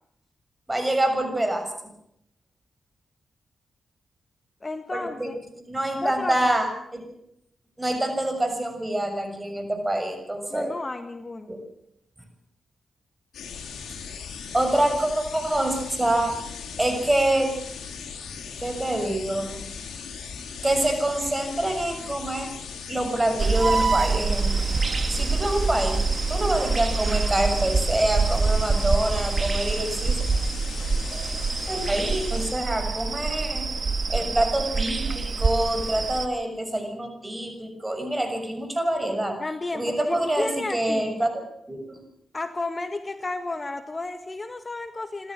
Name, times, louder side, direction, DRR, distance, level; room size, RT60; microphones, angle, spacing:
voice 1, 0.7-1.7 4.9-5.3 5.7-7.1 7.8-10.7 11.5-11.6 14.5-16.4 16.8-17.5 18.6-19.7 20.6-22.5 22.9-24.6 25.1-30.2 31.7-33.7 34.1-39.4 39.7-41.4 41.7-42.0, right 1 dB, 20° right, 6 dB, 6.7 m, -26 dB
voice 2, 4.6-5.4 6.0-6.4 10.5-11.5 39.4-41.1 42.3-45.3, left 3 dB, 35° left, 8 dB, 1.7 m, -32 dB
sound 1, 13.3-32.5, left 6 dB, 85° left, 3.7 m, -38 dB
sound 2, 23.4-36.3, right 4 dB, 50° right, 1.9 m, -25 dB
27.5 x 13.5 x 7.5 m, 0.73 s
cardioid pair, 55°, 0 cm